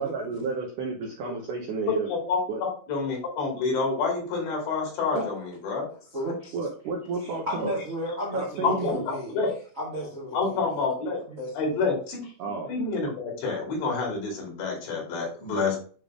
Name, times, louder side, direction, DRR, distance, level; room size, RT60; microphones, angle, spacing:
voice 1, 0.0-2.1 2.5-2.6 6.5-7.8 8.3-9.0 12.4-12.7, right 4 dB, 75° right, 0 dB, 1.9 m, -31 dB
voice 2, 1.9-5.8 8.6-9.5 10.3-11.2 11.5-15.8, left 4 dB, 75° left, 0 dB, 4.7 m, -28 dB
voice 3, 6.1-6.5 7.4-9.3 9.8-10.6 11.3-11.7, equal, 35° right, -4 dB, 1.2 m, -33 dB
9.3 x 3.6 x 3.6 m, 0.42 s
omnidirectional pair, 5.1 m